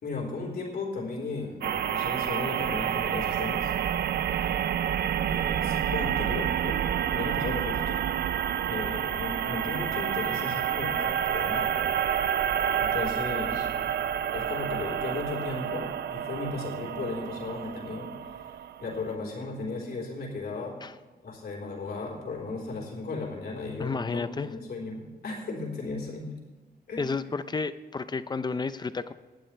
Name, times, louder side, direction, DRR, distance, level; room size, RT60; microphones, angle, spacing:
voice 1, 0.0-3.7 4.4-4.5 5.3-6.8 7.1-8.0 8.7-11.8 12.7-13.7 14.3-18.1 18.8-20.8 21.2-26.3 26.9-27.1, left 3 dB, 70° left, -2 dB, 3.9 m, -35 dB
sound 1, 1.6-19.1, right 9 dB, 75° right, 0.5 m, -29 dB
voice 2, 23.8-24.5 27.0-29.1, left 4 dB, 25° left, 13 dB, 0.5 m, -31 dB
19.0 x 11.5 x 3.3 m, 1.3 s
wide cardioid pair, 165°, 17 cm